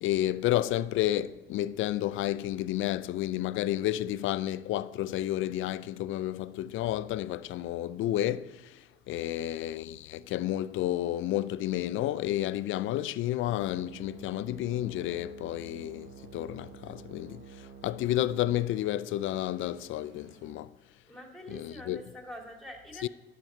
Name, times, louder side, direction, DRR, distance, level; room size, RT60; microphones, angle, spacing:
voice 1, 0.0-20.7 21.5-22.0 23.0-23.1, left 13 dB, 80° left, 0.4 m, -31 dB
sound 1, 13.5-20.5, right 7 dB, 70° right, 0.9 m, -50 dB
voice 2, 21.1-23.1, equal, ahead, 2.5 m, -45 dB
12.0 x 6.9 x 4.5 m
cardioid pair, 90°, 20 cm